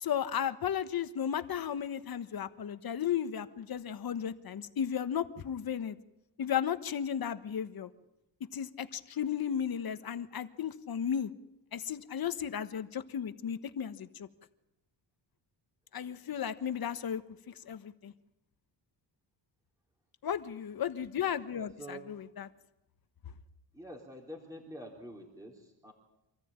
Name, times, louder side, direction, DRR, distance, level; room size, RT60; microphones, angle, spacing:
voice 1, 0.0-6.0 6.4-7.9 8.5-11.3 11.7-14.3 15.9-17.2 17.5-18.1 20.2-22.5, left 8 dB, 55° left, 10 dB, 1.4 m, -34 dB
voice 2, 21.3-22.1 23.7-25.9, right 1 dB, 10° right, -1 dB, 3.7 m, -47 dB
26.5 x 14.5 x 8.9 m, 0.89 s
cardioid pair, 100°, 42 cm